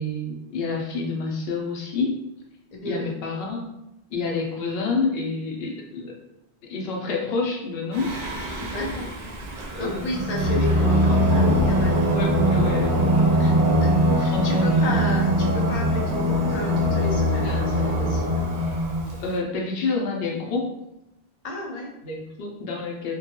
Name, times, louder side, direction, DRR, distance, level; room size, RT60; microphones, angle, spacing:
voice 1, 0.0-2.3 2.8-3.7 4.1-6.1 6.6-8.2 8.6-8.7 9.7-10.1 10.5-10.7 12.0-13.4 14.1-14.9 17.2-17.9 19.2-20.7 22.0-23.2, left 3 dB, 70° left, -1 dB, 0.8 m, -29 dB
voice 2, 2.7-3.1 8.1-8.2 8.7-9.2 9.8-12.0 13.4-18.5 21.4-21.9, left 2 dB, 55° left, 0 dB, 0.4 m, -32 dB
Singing, 7.9-19.3, equal, 55° right, 0.6 m, -22 dB
2.3 x 2.2 x 2.8 m, 0.86 s
omnidirectional pair, 1.1 m